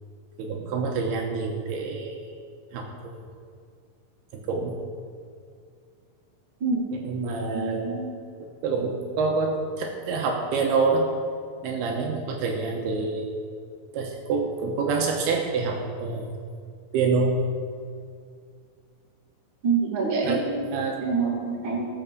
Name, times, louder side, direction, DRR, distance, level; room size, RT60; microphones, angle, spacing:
voice 1, 0.4-2.4 2.7-3.2 4.3-4.8 6.9-8.0 8.4-11.1 11.6-13.3 13.9-16.3 16.9-17.4 20.2-21.0, right 4 dB, 80° right, 1 dB, 2.9 m, -27 dB
voice 2, 7.5-8.1 19.6-20.5 21.0-21.9, right 4 dB, 35° right, -3 dB, 2.5 m, -26 dB
18.0 x 7.2 x 5.4 m, 2.2 s
omnidirectional pair, 4.7 m